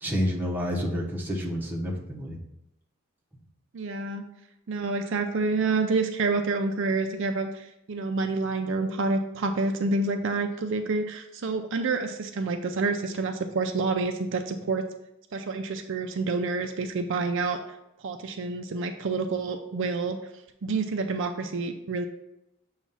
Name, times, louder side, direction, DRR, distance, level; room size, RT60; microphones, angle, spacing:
voice 1, 0.0-2.4, equal, 10° right, -3 dB, 1.0 m, -29 dB
voice 2, 3.7-4.2 4.7-14.8 15.3-17.6 18.0-20.2 20.6-22.1, right 3 dB, 60° right, 5 dB, 0.5 m, -28 dB
7.1 x 2.4 x 5.5 m, 0.87 s
head